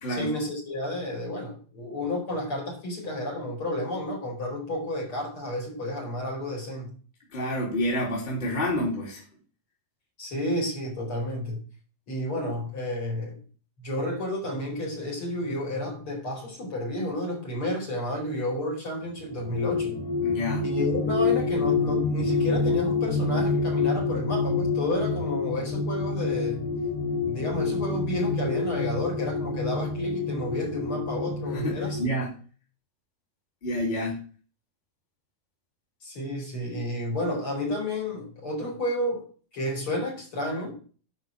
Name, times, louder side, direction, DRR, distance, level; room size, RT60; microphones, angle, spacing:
voice 1, 0.1-7.0 10.2-11.6 12.1-13.4 13.8-19.9 20.6-26.7 27.2-32.0 36.0-39.3 39.5-40.8, left 1 dB, 30° left, 5.2 m, -31 dB
voice 2, 7.3-9.2 20.2-20.7 31.5-32.3 33.6-34.2, equal, 10° left, 3.7 m, -28 dB
sound 1, 19.2-32.0, left 4 dB, 45° left, 4.8 m, -27 dB
11.0 x 6.5 x 7.4 m
omnidirectional pair, 4.7 m